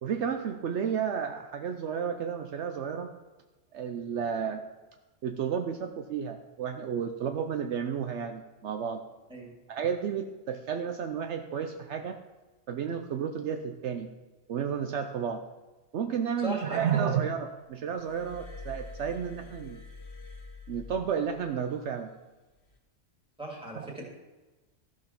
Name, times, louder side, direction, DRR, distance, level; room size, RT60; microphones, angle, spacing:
voice 1, 0.0-3.1 3.7-4.6 5.2-9.0 9.7-12.2 12.7-14.1 14.5-15.4 15.9-19.8 20.7-22.1 23.7-23.9, right 7 dB, 70° right, 6 dB, 0.9 m, -32 dB
voice 2, 16.4-16.8 23.4-24.0, right 1 dB, 5° right, -2 dB, 2.5 m, -37 dB
Glass, 18.0-21.6 22.6-22.8, left 3 dB, 75° left, 1.7 m, -45 dB
13.5 x 6.1 x 5.9 m, 1.2 s
omnidirectional pair, 1.3 m